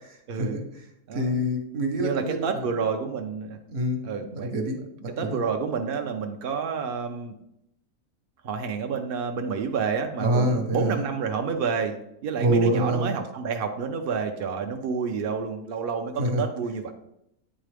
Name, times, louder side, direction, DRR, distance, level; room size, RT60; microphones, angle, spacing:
voice 1, 0.3-0.8 1.1-2.8 3.7-5.4 10.2-11.1 12.4-13.2 16.2-16.5, right 1 dB, 50° right, 3 dB, 1.1 m, -26 dB
voice 2, 1.1-1.4 2.0-3.6 4.0-4.5 5.2-7.4 8.4-12.0 12.2-16.9, right 6 dB, 65° right, 4 dB, 0.5 m, -29 dB
8.8 x 3.7 x 3.4 m, 0.81 s
omnidirectional pair, 1.5 m